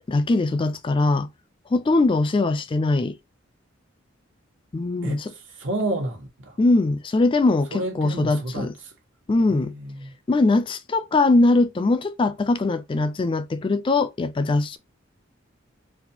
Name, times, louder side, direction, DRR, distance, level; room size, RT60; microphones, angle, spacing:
voice 1, 0.1-1.3 1.7-3.1 4.7-5.3 6.6-8.7 9.3-9.7 10.3-14.8, left 2 dB, 25° left, 0.3 m, -21 dB
voice 2, 5.0-6.6 7.7-8.9 9.4-10.2, right 1 dB, 80° right, 1.2 m, -31 dB
4.2 x 2.3 x 2.7 m
head